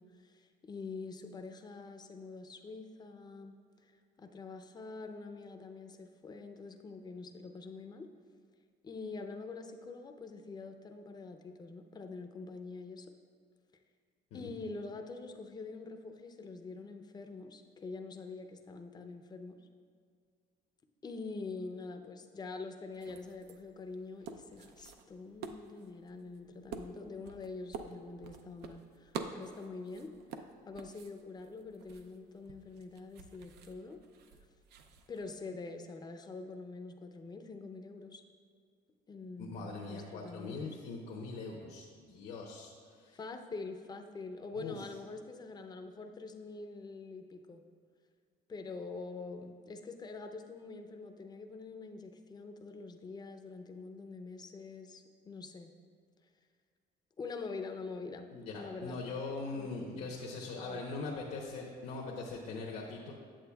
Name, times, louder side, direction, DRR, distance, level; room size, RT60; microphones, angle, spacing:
voice 1, 0.0-3.6 4.2-8.1 8.8-13.1 14.3-19.6 21.0-30.1 30.6-34.0 35.1-38.2 39.1-40.7 43.1-47.6 48.5-55.7 57.2-58.3 58.6-59.0 59.5-60.1 60.6-60.8, left 3 dB, 25° left, 6 dB, 0.5 m, -45 dB
sound 1, 22.9-35.4, right 6 dB, 75° right, 0.5 m, -49 dB
voice 2, 39.4-43.2 44.6-44.8 58.3-63.1, left 3 dB, 70° left, -3 dB, 0.9 m, -41 dB
8.7 x 7.7 x 2.3 m, 2.1 s
cardioid pair, 110°, 17 cm